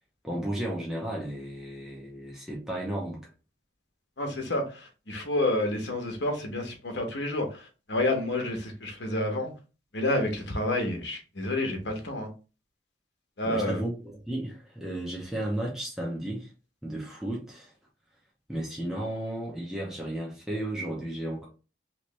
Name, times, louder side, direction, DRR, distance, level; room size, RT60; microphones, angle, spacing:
voice 1, 0.2-3.2 13.4-16.5 16.8-17.7 18.5-21.5, right 1 dB, 5° right, -3 dB, 0.7 m, -34 dB
voice 2, 4.2-9.5 9.9-12.3 13.4-13.8, left 1 dB, 75° left, 3 dB, 1.0 m, -29 dB
3.2 x 3.0 x 3.1 m, 0.33 s
head